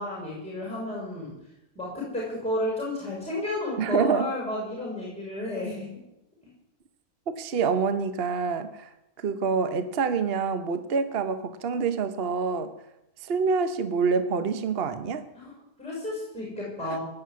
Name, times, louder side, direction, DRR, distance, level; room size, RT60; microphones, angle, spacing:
voice 1, 0.0-1.3 1.7-6.0 6.4-6.5 15.3-17.0, left 1 dB, 5° left, -4 dB, 6.3 m, -32 dB
voice 2, 3.8-4.3 7.3-8.9 9.2-12.7 13.2-15.2 16.8-17.0, right 5 dB, 45° right, 10 dB, 1.1 m, -26 dB
17.5 x 7.7 x 9.4 m, 0.86 s
omnidirectional pair, 1.6 m